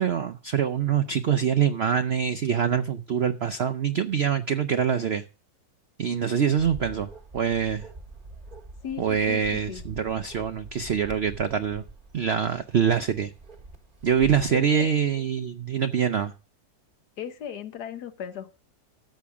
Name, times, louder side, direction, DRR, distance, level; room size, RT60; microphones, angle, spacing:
voice 1, 0.0-5.2 6.0-7.9 9.0-11.8 12.1-13.3 14.0-16.3, right 7 dB, 80° right, 0.5 m, -25 dB
Bark, 6.6-14.6, right 2 dB, 30° right, 1.3 m, -45 dB
voice 2, 8.8-9.4 9.7-9.8 14.5-14.9 17.2-18.5, left 9 dB, 65° left, 1.5 m, -36 dB
13.5 x 8.6 x 3.6 m
omnidirectional pair, 2.0 m